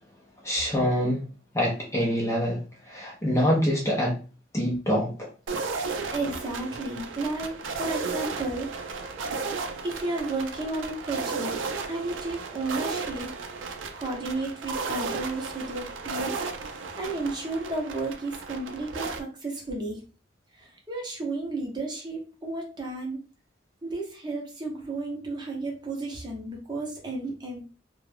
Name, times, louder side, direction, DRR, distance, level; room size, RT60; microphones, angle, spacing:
voice 1, 0.4-1.2 1.5-4.2 4.5-5.3, equal, 15° left, 0.5 m, -25 dB
sound 1, 5.5-19.2, right 4 dB, 85° right, 0.4 m, -34 dB
voice 2, 5.9-8.7 9.8-11.5 11.9-13.3 13.9-16.4 16.9-20.0 20.5-23.2 23.8-27.6, right 2 dB, 20° right, 0.7 m, -33 dB
2.4 x 2.1 x 3.2 m
head